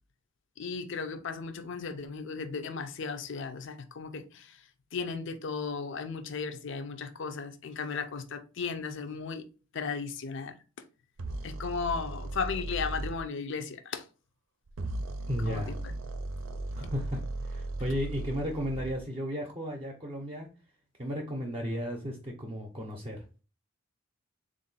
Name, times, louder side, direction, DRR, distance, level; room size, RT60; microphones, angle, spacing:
voice 1, 0.6-9.5 9.7-10.5 11.4-14.1 15.5-15.6, left 5 dB, 60° left, 0.5 m, -35 dB
sound 1, 11.2-13.2 14.7-19.0, right 2 dB, 75° right, 0.6 m, -37 dB
voice 2, 15.3-15.8 16.8-20.5 21.0-23.2, equal, 30° right, 0.6 m, -34 dB
3.6 x 2.5 x 4.0 m
head